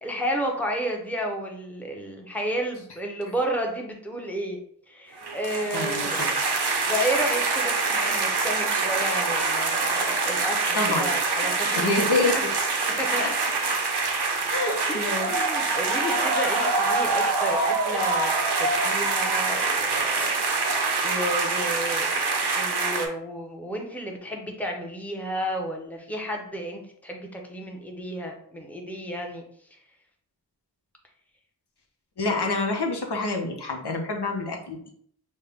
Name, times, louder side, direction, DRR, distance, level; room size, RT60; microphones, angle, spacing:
voice 1, 0.0-4.6 4.9-6.4 6.7-11.9 12.2-12.4 13.0-13.3 14.9-20.4 21.0-22.2 22.5-29.4, equal, 5° left, 1 dB, 0.8 m, -32 dB
sound 1, 5.2-23.1, right 3 dB, 80° right, 0.7 m, -25 dB
voice 2, 5.7-6.4 10.7-11.1 11.7-12.4 13.2-13.3 14.5-15.8 32.2-34.9, left 3 dB, 80° left, 2 dB, 0.8 m, -27 dB
5.3 x 2.2 x 3.4 m, 0.65 s
wide cardioid pair, 60°, 40 cm